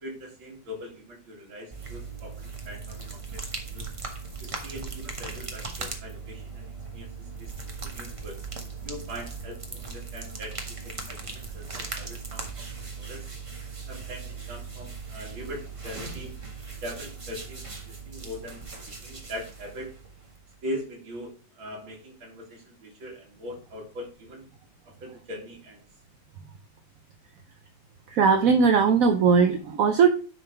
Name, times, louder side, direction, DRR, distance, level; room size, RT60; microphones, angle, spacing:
voice 1, 0.0-3.9 4.4-8.4 8.8-10.8 11.1-12.7 13.0-13.3 13.9-16.4 16.8-18.8 19.0-19.9 20.6-24.5 24.9-25.8, equal, 85° right, 0 dB, 3.0 m, -41 dB
sound 1, 1.7-20.6, right 4 dB, 25° right, 0.7 m, -39 dB
voice 2, 28.1-30.1, right 5 dB, 65° right, 6 dB, 0.8 m, -19 dB
10.0 x 3.6 x 4.5 m, 0.37 s
omnidirectional pair, 2.1 m